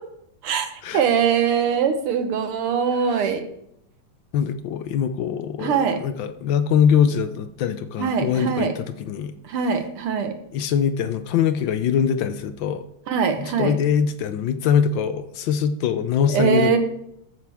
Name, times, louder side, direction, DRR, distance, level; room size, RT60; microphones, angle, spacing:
voice 1, 0.9-3.5 5.6-6.0 8.0-8.7 9.4-10.3 13.1-13.8 16.3-16.8, right 7 dB, 85° right, 7 dB, 2.0 m, -22 dB
voice 2, 4.3-9.3 10.5-12.8 13.4-16.8, left 7 dB, 70° left, 11 dB, 1.3 m, -22 dB
13.0 x 9.2 x 3.5 m, 0.76 s
omnidirectional pair, 2.4 m